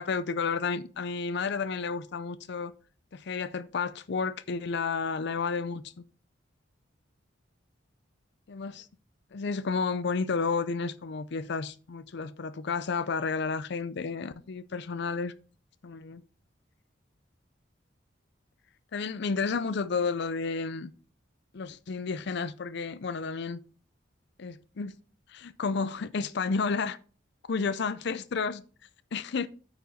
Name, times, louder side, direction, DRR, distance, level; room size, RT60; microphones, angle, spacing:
voice 1, 0.0-2.7 3.1-5.8 8.5-8.9 9.3-15.3 15.8-16.2 18.9-20.9 21.5-23.6 24.4-24.9 25.3-27.0 27.5-28.6 29.1-29.5, left 5 dB, 60° left, 0.5 m, -31 dB
9.1 x 4.9 x 3.9 m
head